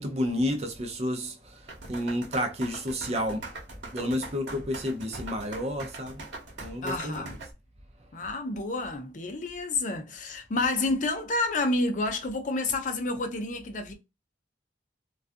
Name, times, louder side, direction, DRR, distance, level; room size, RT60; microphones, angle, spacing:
voice 1, 0.0-1.4 1.9-3.4 3.9-6.2 6.6-7.2, equal, 35° right, 0.5 m, -30 dB
sound 1, 1.7-7.5, right 3 dB, 90° right, 0.9 m, -41 dB
voice 2, 6.8-7.4 8.1-13.9, left 2 dB, 45° left, 0.5 m, -29 dB
2.3 x 2.3 x 2.5 m
head